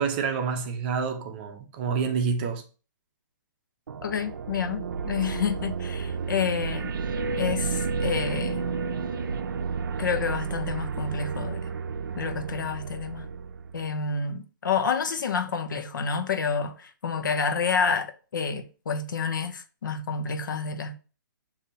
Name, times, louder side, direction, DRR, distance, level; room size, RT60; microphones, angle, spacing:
voice 1, 0.0-2.6, right 5 dB, 30° right, 0.6 m, -28 dB
sound 1, 3.9-14.1, right 5 dB, 80° right, 0.5 m, -31 dB
voice 2, 4.0-6.9 7.4-8.6 10.0-11.6 12.2-13.3 13.7-21.0, left 5 dB, 75° left, 0.8 m, -29 dB
6.6 x 2.7 x 2.7 m
hypercardioid pair, 160°, 11 cm